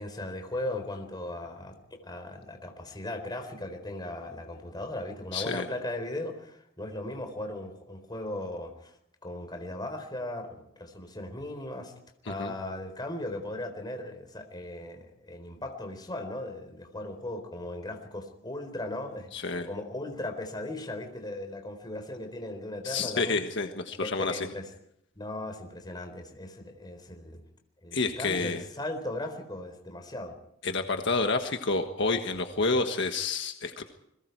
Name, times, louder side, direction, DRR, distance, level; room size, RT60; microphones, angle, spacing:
voice 1, 0.0-9.0 9.2-11.9 12.2-23.4 24.0-24.7 25.2-27.4 27.8-30.4, left 1 dB, 20° left, 5 dB, 4.1 m, -37 dB
voice 2, 5.3-5.7 12.3-12.5 19.3-19.7 22.8-24.5 27.9-28.6 30.6-33.8, left 3 dB, 65° left, 5 dB, 1.5 m, -29 dB
29.0 x 22.0 x 4.7 m, 0.76 s
head